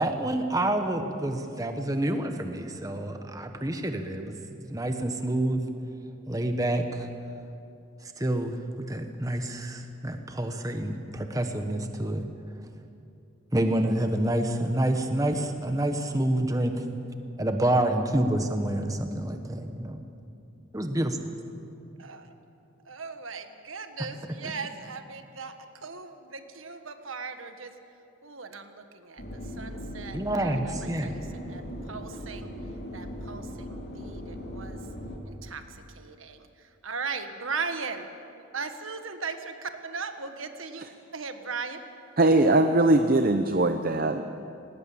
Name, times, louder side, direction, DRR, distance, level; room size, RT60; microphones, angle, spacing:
voice 1, 0.0-4.4 4.6-5.6 6.3-7.1 8.2-8.5 8.9-12.3 13.5-16.8 17.4-20.0 20.7-21.2 30.1-31.1, right 1 dB, 15° right, 6 dB, 1.3 m, -28 dB
voice 2, 22.0-22.3 22.8-27.7 28.2-32.5 32.9-34.8 35.2-38.1 38.3-41.8, right 5 dB, 85° right, 7 dB, 1.5 m, -38 dB
sound 1, 29.2-35.2, equal, 55° left, 3.4 m, -39 dB
voice 3, 42.2-44.2, right 2 dB, 45° right, 7 dB, 0.7 m, -21 dB
19.5 x 18.5 x 8.7 m, 2.6 s
head